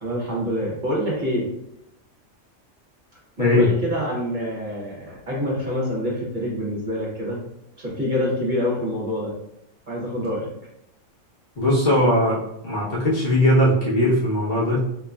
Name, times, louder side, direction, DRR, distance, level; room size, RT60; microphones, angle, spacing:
voice 1, 0.0-1.5 3.4-7.4 7.8-9.3 9.9-10.5, equal, 40° right, -5 dB, 1.0 m, -26 dB
voice 2, 11.6-15.1, left 1 dB, 50° left, -6 dB, 1.1 m, -20 dB
3.9 x 3.0 x 2.3 m, 0.81 s
omnidirectional pair, 1.3 m